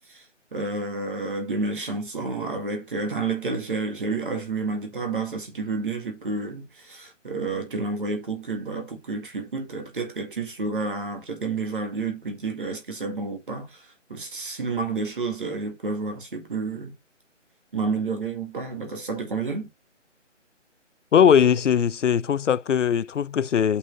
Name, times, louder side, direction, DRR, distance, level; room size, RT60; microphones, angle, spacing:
voice 1, 0.5-13.8 14.1-16.9 17.7-19.7, right 3 dB, 45° right, 2.1 m, -30 dB
voice 2, 21.1-23.8, left 8 dB, 70° left, 0.5 m, -20 dB
6.0 x 5.6 x 4.0 m
figure-of-eight pair, 175°, 38 cm